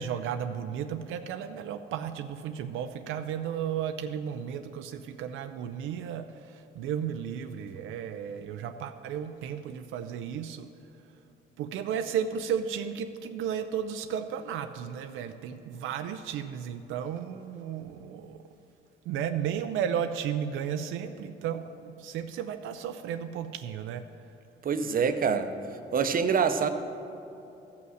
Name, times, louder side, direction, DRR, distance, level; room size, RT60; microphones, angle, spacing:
voice 1, 0.0-10.7 11.6-18.4 19.1-24.1, right 8 dB, 85° right, 8 dB, 0.4 m, -34 dB
voice 2, 24.6-25.5 25.9-26.7, right 6 dB, 45° right, 9 dB, 0.7 m, -25 dB
13.5 x 5.6 x 6.4 m, 2.8 s
cardioid pair, 90°, 20 cm